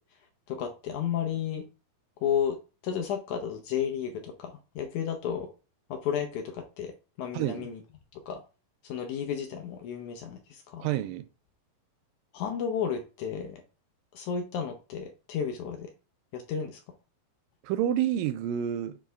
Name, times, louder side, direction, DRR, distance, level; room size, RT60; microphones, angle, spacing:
voice 1, 0.5-1.6 2.2-2.6 2.8-5.5 5.9-6.9 7.2-7.8 8.1-8.4 8.8-10.9 12.3-13.6 14.1-15.9 16.3-16.8, left 8 dB, 70° left, 2.0 m, -32 dB
voice 2, 7.3-7.7 10.8-11.3 17.6-19.0, right 11 dB, 85° right, 2.3 m, -28 dB
7.5 x 3.9 x 3.4 m
omnidirectional pair, 4.1 m